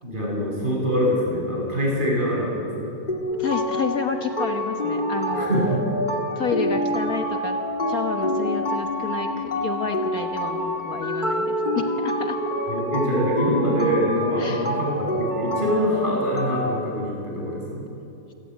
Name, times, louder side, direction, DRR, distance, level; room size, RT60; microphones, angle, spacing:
voice 1, 0.0-2.9 5.3-5.8 12.7-17.8, equal, 30° right, -3 dB, 7.9 m, -24 dB
sound 1, 3.1-16.8, equal, 25° left, 2.2 m, -27 dB
voice 2, 3.4-5.5 6.4-7.6 7.9-12.4 14.4-14.8, left 5 dB, 60° left, 5 dB, 1.8 m, -30 dB
28.5 x 17.0 x 9.5 m, 2.8 s
omnidirectional pair, 1.8 m